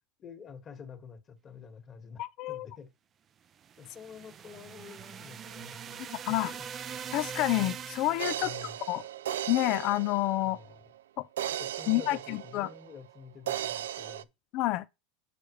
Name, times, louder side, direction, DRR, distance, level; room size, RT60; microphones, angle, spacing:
voice 1, 0.2-2.2 2.5-2.9 3.8-6.6 8.4-8.8 10.4-10.8 11.5-14.3, left 6 dB, 35° left, 2.0 m, -48 dB
voice 2, 2.2-2.7 6.0-6.5 7.1-8.5 8.9-9.0 9.5-10.6 11.2-11.3 11.9-12.7 14.5-14.9, left 17 dB, 55° left, 0.4 m, -29 dB
sound 1, 3.6-8.6, right 8 dB, 35° right, 0.5 m, -42 dB
sound 2, 8.2-10.8 11.4-13.1 13.5-14.2, right 11 dB, 90° right, 0.3 m, -36 dB
6.8 x 6.7 x 3.2 m
hypercardioid pair, 110°, 0 cm